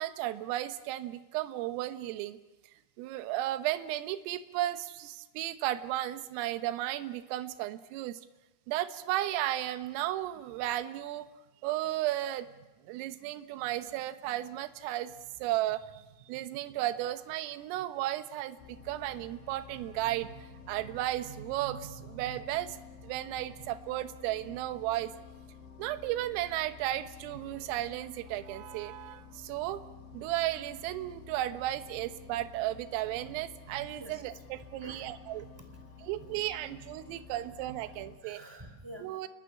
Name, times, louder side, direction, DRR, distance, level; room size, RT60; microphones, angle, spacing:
voice 1, 0.0-2.4 3.0-8.2 8.7-11.3 11.6-12.5 12.9-15.1 15.4-25.1 25.8-29.8 30.1-35.5 36.1-38.4 39.0-39.3, right 14 dB, 80° right, 9 dB, 3.7 m, -34 dB
sound 1, 18.6-38.2, left 6 dB, 80° left, 5.3 m, -51 dB
voice 2, 34.0-36.3 36.6-36.7 37.1-37.3 37.8-39.2, right 1 dB, 5° right, 7 dB, 2.3 m, -51 dB
29.0 x 22.0 x 8.7 m, 1.1 s
omnidirectional pair, 6.0 m